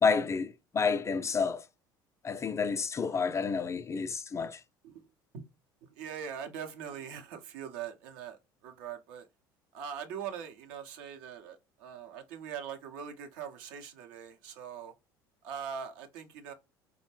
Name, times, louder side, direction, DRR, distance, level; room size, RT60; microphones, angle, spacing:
voice 1, 0.0-1.7 2.2-4.6, left 5 dB, 25° left, 0.3 m, -29 dB
voice 2, 5.8-9.3 9.7-14.9 15.4-16.5, right 8 dB, 70° right, 0.7 m, -42 dB
4.3 x 2.0 x 3.1 m
hypercardioid pair, 65°, 11 cm